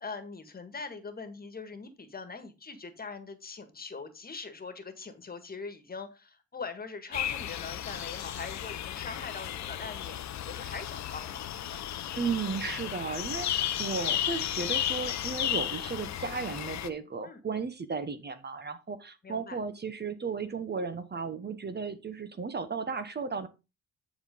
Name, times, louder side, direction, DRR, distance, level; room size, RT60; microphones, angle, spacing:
voice 1, 0.0-10.2 10.5-11.8 17.2-17.4 19.2-19.6, left 4 dB, 30° left, 9 dB, 1.7 m, -42 dB
sound 1, 7.1-16.9, left 11 dB, 65° left, 0.9 m, -34 dB
voice 2, 12.2-23.5, right 5 dB, 35° right, 11 dB, 1.2 m, -35 dB
10.0 x 4.3 x 5.2 m, 0.27 s
cardioid pair, 90°, 30 cm